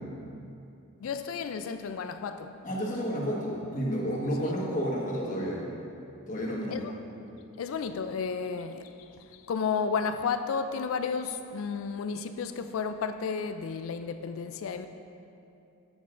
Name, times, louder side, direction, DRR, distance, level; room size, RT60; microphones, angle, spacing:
voice 1, 1.0-2.5 6.7-6.9 7.6-14.9, left 5 dB, 80° left, 9 dB, 0.4 m, -32 dB
voice 2, 2.6-5.6 6.3-6.8, equal, 40° left, -3 dB, 1.4 m, -31 dB
13.0 x 8.0 x 2.5 m, 2.7 s
head